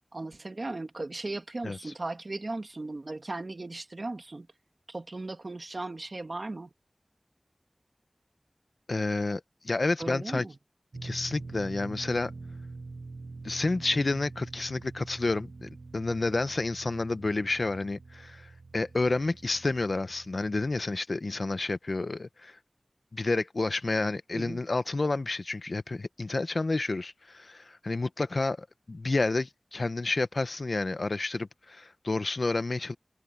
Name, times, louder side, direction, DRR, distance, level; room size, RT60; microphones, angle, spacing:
voice 1, 0.1-4.5 4.9-6.7 10.0-10.6 24.3-24.6, right 2 dB, 70° right, 1.7 m, -37 dB
voice 2, 1.6-1.9 8.9-10.4 11.0-12.3 13.4-22.6 23.1-33.0, left 3 dB, 80° left, 0.9 m, -30 dB
sound 1, 10.9-21.0, right 3 dB, 90° right, 1.6 m, -45 dB
wide cardioid pair, 50°, 0 cm